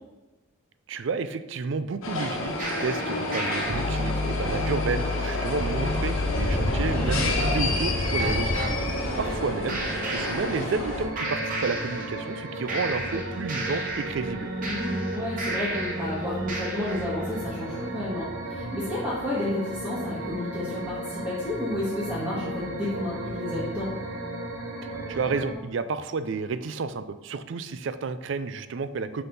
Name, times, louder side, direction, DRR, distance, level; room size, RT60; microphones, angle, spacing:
voice 1, 0.9-8.7 9.2-9.8 10.1-14.5 25.1-29.2, right 4 dB, 60° right, 12 dB, 0.4 m, -31 dB
sound 1, 2.0-11.0, left 2 dB, 75° left, 1.2 m, -29 dB
sound 2, 2.6-8.7 9.7-10.9 11.2-12.4 12.7-16.1 16.5-17.1, left 1 dB, 40° right, 1.0 m, -31 dB
sound 3, 6.9-25.5, right 1 dB, 80° right, 0.9 m, -35 dB
voice 2, 14.6-23.9, left 1 dB, 15° right, -9 dB, 1.6 m, -31 dB
5.8 x 5.6 x 3.9 m, 1.2 s
head